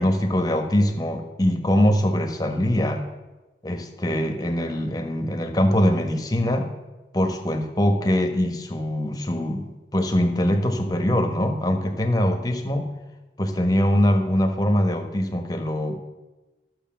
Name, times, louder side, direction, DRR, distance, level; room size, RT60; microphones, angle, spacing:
voice 1, 0.0-3.0 3.6-6.7 7.1-12.9 13.4-16.0, equal, 20° left, 5 dB, 1.1 m, -23 dB
12.5 x 6.6 x 7.4 m, 1.1 s
head